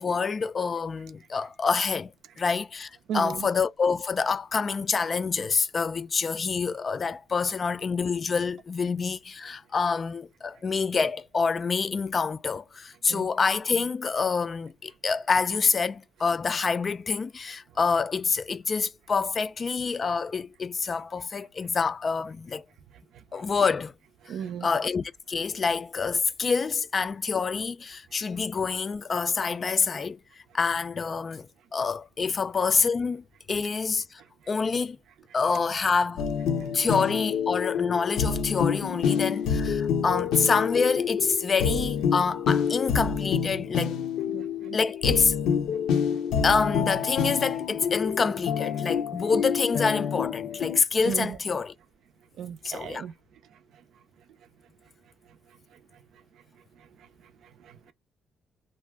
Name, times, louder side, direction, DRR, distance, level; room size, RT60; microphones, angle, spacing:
voice 1, 0.0-2.1 2.4-22.6 23.3-23.9 24.6-30.2 30.5-34.2 34.5-35.0 35.3-36.2 36.7-43.9 44.7-45.3 46.4-51.7 52.6-53.1, left 5 dB, 40° left, 0.3 m, -27 dB
voice 2, 3.1-3.5 13.1-13.3 23.1-23.4 24.3-24.7 44.3-44.8 51.1-51.4 52.4-53.1 57.6-57.9, right 8 dB, 75° right, 0.5 m, -35 dB
sound 1, 36.2-50.8, left 7 dB, 90° left, 0.6 m, -27 dB
2.5 x 2.2 x 3.4 m
cardioid pair, 90°, 0 cm